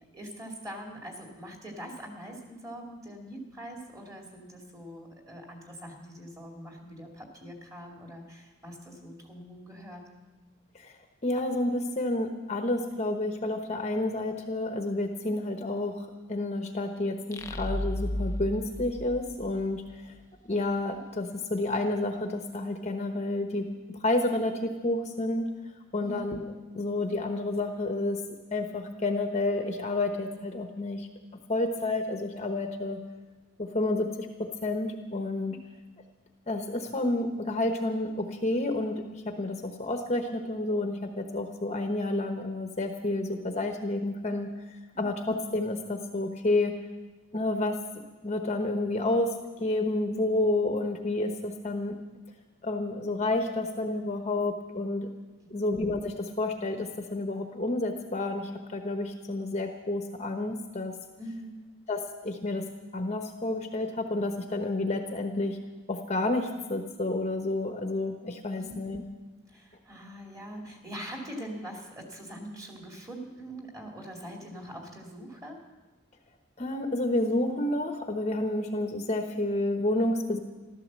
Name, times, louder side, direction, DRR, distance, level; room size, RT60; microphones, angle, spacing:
voice 1, 0.1-10.1 26.0-26.2 35.5-35.6 44.9-45.1 55.4-55.7 61.2-61.6 68.6-69.0 69.5-75.6, equal, 15° right, 1 dB, 2.5 m, -43 dB
voice 2, 11.2-20.1 20.5-23.7 24.0-25.5 25.9-26.5 26.7-28.2 28.5-31.1 31.5-33.0 33.6-35.6 36.5-44.5 45.0-46.7 47.3-47.8 48.2-49.3 49.6-51.9 52.6-55.1 55.5-60.9 61.9-62.6 62.9-65.6 65.9-69.0 76.6-80.4, left 2 dB, 30° left, 5 dB, 1.0 m, -30 dB
sound 1, 17.3-19.9, left 1 dB, 15° left, 0.6 m, -34 dB
14.5 x 13.0 x 7.4 m, 1.2 s
head